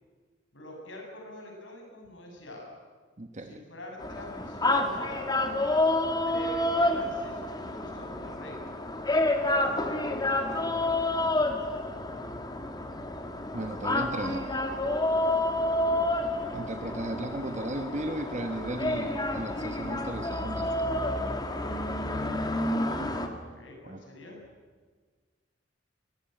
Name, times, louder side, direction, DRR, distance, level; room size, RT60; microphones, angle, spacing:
voice 1, 0.5-2.8 3.4-5.5 6.2-8.5 9.1-11.4 16.8-17.0 23.4-24.4, left 1 dB, 85° left, 1 dB, 6.7 m, -46 dB
voice 2, 3.2-3.6 13.5-14.6 16.5-20.8 22.9-23.0 23.9-24.0, right 1 dB, 40° right, 7 dB, 1.1 m, -35 dB
sound 1, 4.0-23.3, left 1 dB, 20° left, 2.0 m, -29 dB
22.0 x 19.5 x 8.9 m, 1.5 s
head